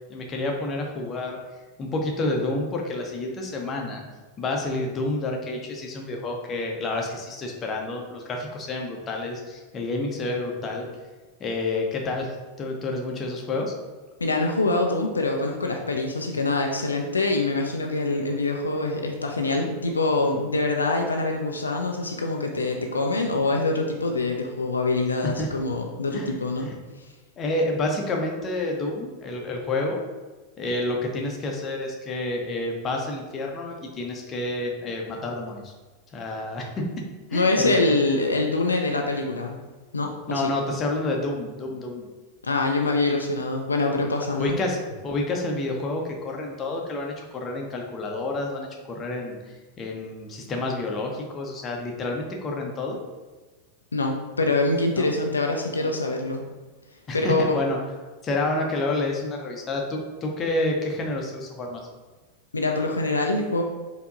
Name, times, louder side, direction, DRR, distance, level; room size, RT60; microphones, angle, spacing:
voice 1, 0.1-1.4 1.8-4.0 4.4-10.9 11.4-13.7 25.4-25.5 26.1-26.3 26.6-26.8 27.4-30.0 30.6-35.7 36.1-36.9 37.3-38.0 40.3-42.1 44.3-53.0 55.0-55.1 57.1-57.8 58.2-61.9, left 2 dB, 25° left, 1 dB, 0.7 m, -29 dB
voice 2, 14.2-26.7 37.3-39.6 39.9-40.5 42.4-44.6 53.9-56.4 57.1-57.6 62.5-63.6, left 2 dB, 75° left, 2 dB, 0.3 m, -24 dB
4.4 x 2.7 x 2.5 m, 1.2 s
figure-of-eight pair, 90°, 0 cm